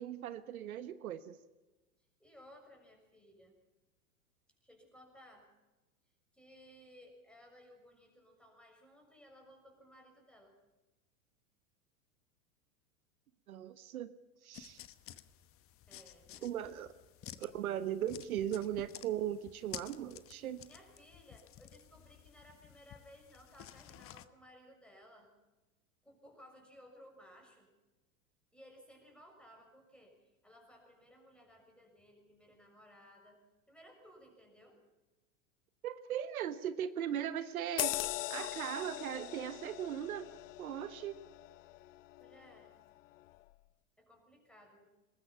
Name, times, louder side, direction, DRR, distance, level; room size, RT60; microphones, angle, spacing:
voice 1, 0.0-1.4 13.5-14.1 14.4-14.8 16.4-16.9 17.4-20.7 35.8-38.0 38.3-40.3 40.6-41.1, right 10 dB, 75° right, 12 dB, 1.3 m, -38 dB
voice 2, 2.2-3.5 4.6-5.5 6.3-10.6 15.9-16.9 20.7-25.3 26.0-27.7 28.5-33.4 33.7-34.8 42.2-42.8 44.0-44.9, equal, ahead, 2 dB, 6.6 m, -59 dB
sound 1, 14.5-24.3, left 12 dB, 30° left, 1.1 m, -53 dB
sound 2, 37.8-42.7 43.2-43.4, left 17 dB, 60° left, 0.8 m, -41 dB
22.5 x 20.0 x 5.8 m, 1.1 s
hypercardioid pair, 105°, 43 cm